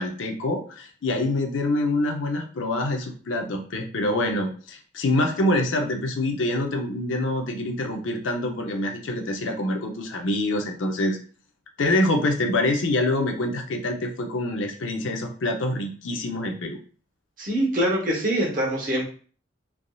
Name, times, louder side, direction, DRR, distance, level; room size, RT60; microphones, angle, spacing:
voice 1, 0.0-11.2 11.8-16.8, left 1 dB, 85° left, 3 dB, 0.6 m, -25 dB
voice 2, 17.4-19.1, equal, 45° right, -3 dB, 1.0 m, -24 dB
3.4 x 2.5 x 2.3 m, 0.42 s
head